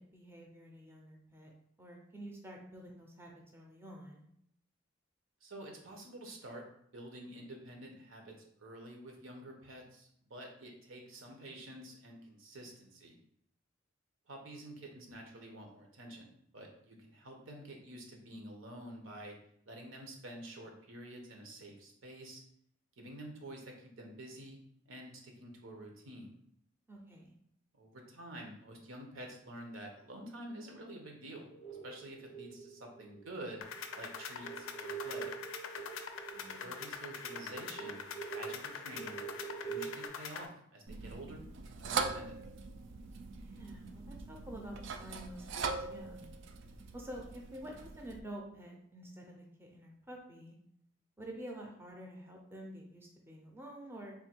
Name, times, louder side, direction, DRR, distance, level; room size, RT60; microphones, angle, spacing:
voice 1, 0.0-1.5 1.8-4.3 26.9-27.4 36.3-36.6 43.4-45.6 45.9-46.3 46.9-50.6 51.2-54.1, right 1 dB, 10° right, 0 dB, 0.5 m, -49 dB
voice 2, 5.4-6.6 6.9-13.1 14.3-19.3 19.7-22.4 23.0-24.6 24.9-26.3 27.8-33.6 33.9-35.3 36.6-39.2 39.6-42.4 46.6-46.8, right 1 dB, 80° right, 2 dB, 0.9 m, -49 dB
sound 1, 31.5-40.1, right 6 dB, 35° left, 0.5 m, -46 dB
sound 2, 33.6-40.5, left 6 dB, 85° left, 0.4 m, -44 dB
sound 3, 40.9-48.2, right 5 dB, 60° right, 0.3 m, -41 dB
3.6 x 2.3 x 4.3 m, 0.71 s
head